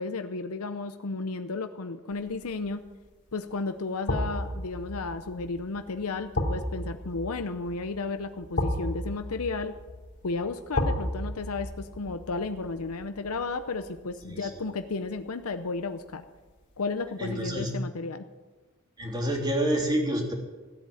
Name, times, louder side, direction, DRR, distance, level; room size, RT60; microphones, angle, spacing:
voice 1, 0.0-2.8 3.3-9.8 10.2-16.2 16.8-18.2, left 3 dB, 85° left, 8 dB, 0.8 m, -33 dB
sound 1, 2.3-2.7 4.1-15.1 15.4-15.5, left 1 dB, 55° left, 3.1 m, -34 dB
voice 2, 17.2-17.7 19.0-20.3, right 1 dB, 20° right, 0 dB, 3.1 m, -28 dB
16.0 x 8.4 x 9.3 m, 1.3 s
head